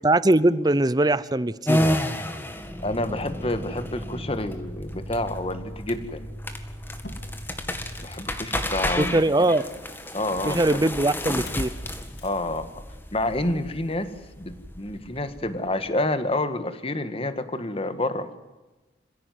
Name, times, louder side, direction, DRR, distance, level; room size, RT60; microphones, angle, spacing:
voice 1, 0.0-2.0 9.0-9.6 10.4-11.7, right 2 dB, 20° right, 17 dB, 0.7 m, -21 dB
sound 1, 1.7-15.9, left 1 dB, 10° left, 1.9 m, -31 dB
Motor vehicle (road), 2.6-9.0 11.3-11.7 12.0-12.4, equal, 60° left, 2.9 m, -39 dB
voice 2, 2.8-6.3 8.0-9.2 10.1-10.8 12.2-12.8 13.1-18.3, left 1 dB, 30° left, 10 dB, 1.7 m, -28 dB
26.5 x 16.5 x 9.5 m, 1.1 s
head